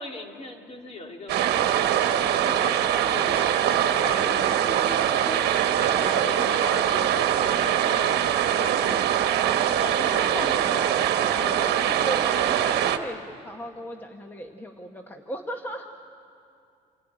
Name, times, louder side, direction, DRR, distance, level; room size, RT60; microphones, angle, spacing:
voice 1, 0.0-2.0 2.3-5.4 5.8-9.3 9.7-10.9 11.4-12.1, left 2 dB, 40° left, 3 dB, 2.5 m, -38 dB
sound 1, 1.3-13.0, right 10 dB, 75° right, 1.1 m, -23 dB
voice 2, 10.0-11.1 11.9-15.9, equal, 10° left, 4 dB, 1.1 m, -37 dB
27.0 x 13.0 x 9.8 m, 2.5 s
cardioid pair, 110°, 17 cm